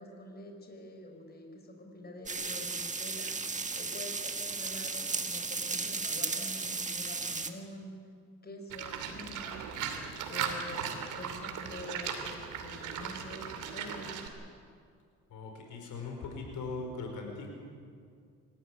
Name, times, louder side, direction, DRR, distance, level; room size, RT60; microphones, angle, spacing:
voice 1, 0.0-8.0 8.4-9.7 10.3-14.2, left 1 dB, 30° left, 3 dB, 4.6 m, -46 dB
sound 1, 2.3-7.5, right 4 dB, 25° right, 1.7 m, -35 dB
Livestock farm animals working animals, 8.7-14.3, right 7 dB, 85° right, 2.7 m, -38 dB
voice 2, 15.3-17.5, left 3 dB, 80° left, 2 dB, 5.0 m, -40 dB
25.0 x 14.5 x 10.0 m, 2.2 s
cardioid pair, 90°, 30 cm